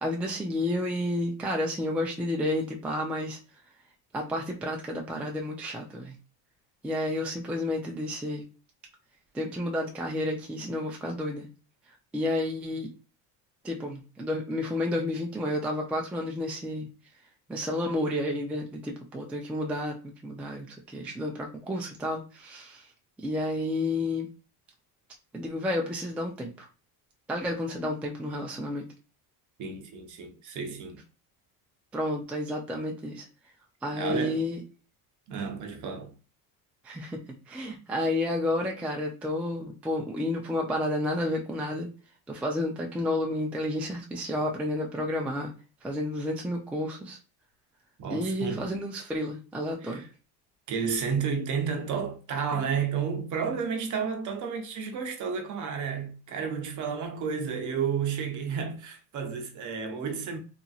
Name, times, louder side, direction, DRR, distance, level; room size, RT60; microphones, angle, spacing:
voice 1, 0.0-3.4 4.1-6.1 6.8-8.4 9.3-11.5 12.1-12.9 13.6-16.9 17.5-20.0 20.2-22.9 23.2-24.3 25.3-26.7 27.3-28.9 31.9-33.2 33.8-34.6 36.8-37.2 37.5-41.9 42.3-45.5 45.8-47.2 48.1-50.0, left 1 dB, 5° right, 0.3 m, -31 dB
voice 2, 29.6-31.0 33.9-34.4 35.3-36.1 48.0-48.7 49.8-50.1 50.7-60.4, right 6 dB, 45° right, 0.7 m, -31 dB
2.9 x 2.6 x 2.4 m
cardioid pair, 115°, 43 cm